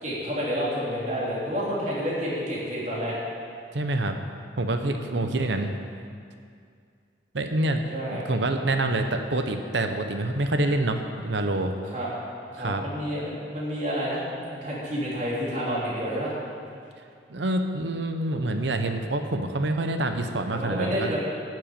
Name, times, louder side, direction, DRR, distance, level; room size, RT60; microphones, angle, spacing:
voice 1, 0.0-3.1 5.1-5.6 7.9-8.2 11.9-12.1 12.5-16.3 20.5-21.2, equal, 40° right, -6 dB, 3.3 m, -29 dB
voice 2, 3.7-4.2 4.6-5.8 7.3-7.8 8.1-11.7 12.6-12.8 17.3-21.1, right 2 dB, 80° right, 6 dB, 0.8 m, -26 dB
10.0 x 7.7 x 8.9 m, 2.3 s
head